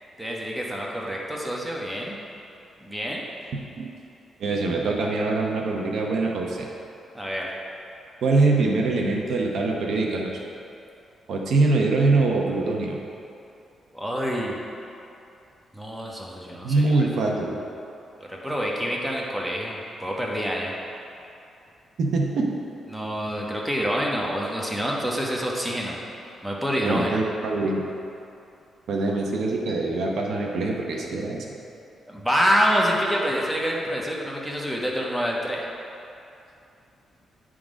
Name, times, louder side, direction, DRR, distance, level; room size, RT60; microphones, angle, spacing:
voice 1, 0.2-2.2 2.8-3.2 7.1-7.5 13.9-14.6 15.7-17.1 18.3-20.7 22.9-26.0 26.4-27.2 32.1-35.7, equal, 5° right, -3 dB, 1.1 m, -27 dB
voice 2, 4.4-6.7 8.2-10.4 11.3-13.0 16.6-17.5 22.0-22.5 26.8-27.8 28.9-31.5, right 3 dB, 70° right, 0 dB, 0.9 m, -23 dB
9.5 x 3.8 x 5.1 m, 2.7 s
cardioid pair, 100°, 0 cm